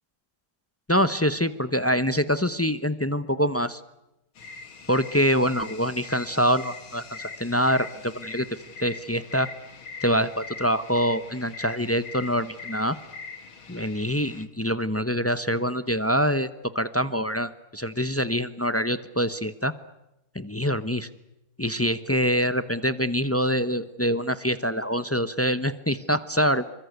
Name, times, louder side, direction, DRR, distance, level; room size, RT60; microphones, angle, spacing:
voice 1, 0.9-3.8 4.9-8.5 8.8-9.5 10.0-13.0 13.7-16.5 16.7-19.7 20.3-21.1 21.6-26.7, equal, 25° left, 12 dB, 0.3 m, -25 dB
sound 1, 4.4-14.5, left 4 dB, 75° left, 2.9 m, -42 dB
28.0 x 24.5 x 8.1 m, 0.88 s
omnidirectional pair, 2.2 m